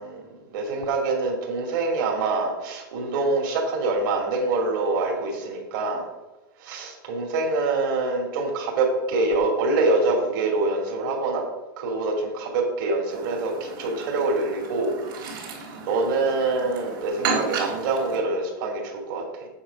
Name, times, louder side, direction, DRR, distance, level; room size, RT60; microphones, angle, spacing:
voice 1, 0.0-6.0 6.6-11.4 11.8-14.9 15.8-19.5, right 3 dB, 70° right, -1 dB, 2.5 m, -25 dB
Chirp tweet, 13.1-18.2, right 4 dB, 90° right, 3.4 m, -33 dB
8.6 x 7.2 x 5.1 m, 1.1 s
supercardioid pair, 170°, 11 cm